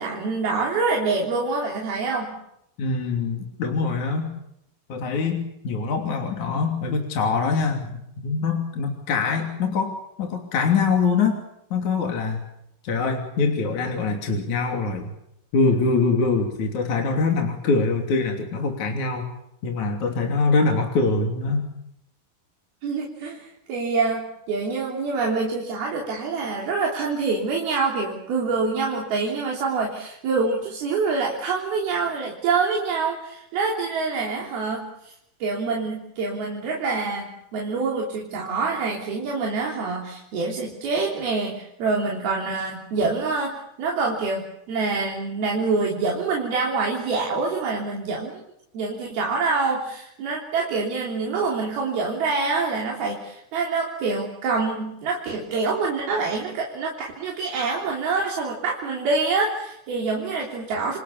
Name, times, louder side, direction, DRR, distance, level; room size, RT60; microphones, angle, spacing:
voice 1, 0.0-2.3 22.8-35.1 35.4-48.4 48.7-61.0, right 4 dB, 75° right, -1 dB, 5.3 m, -26 dB
voice 2, 2.8-4.3 4.9-11.4 11.7-12.4 12.8-15.1 15.5-19.3 19.6-21.7, left 4 dB, 50° left, 2 dB, 4.1 m, -24 dB
30.0 x 27.0 x 7.2 m, 0.81 s
omnidirectional pair, 4.4 m